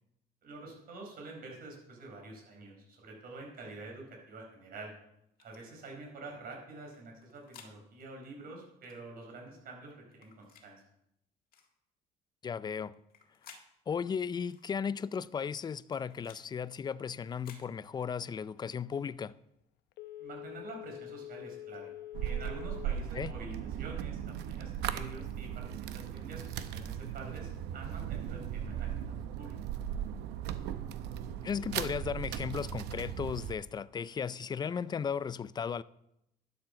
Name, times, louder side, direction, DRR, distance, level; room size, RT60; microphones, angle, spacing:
voice 1, 0.4-4.9 5.4-10.8 20.2-21.9 22.2-29.6, right 2 dB, 60° right, 4.5 m, -47 dB
sound 1, 5.4-5.6 6.9-7.7 8.8-9.0 10.1-10.7 11.5-11.7 12.9-13.7 14.5-14.7 15.6-16.4 17.3-17.7, left 7 dB, 60° left, 1.8 m, -56 dB
voice 2, 12.4-13.0 13.9-19.3 23.1-23.3 31.4-35.8, left 6 dB, 25° left, 0.4 m, -35 dB
Telephone, 19.9-23.0 23.4-23.5, left 13 dB, 85° left, 0.8 m, -46 dB
sound 2, 22.1-33.6, right 10 dB, 85° right, 0.7 m, -37 dB
11.5 x 7.2 x 5.8 m
cardioid pair, 110°, 17 cm